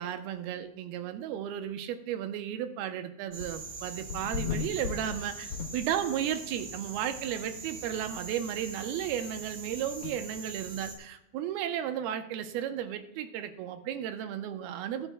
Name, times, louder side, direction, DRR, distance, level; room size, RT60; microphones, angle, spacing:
voice 1, 0.0-15.1, right 10 dB, 85° right, 8 dB, 2.7 m, -34 dB
sound 1, 3.3-3.7 4.1-6.2 6.6-6.7 7.3-7.4 7.6-7.7 8.1-8.2 10.0-10.2, left 7 dB, 90° left, 1.6 m, -37 dB
sound 2, 3.3-11.0, right 3 dB, 45° right, 2.6 m, -43 dB
20.0 x 9.0 x 2.2 m, 0.82 s
omnidirectional pair, 4.3 m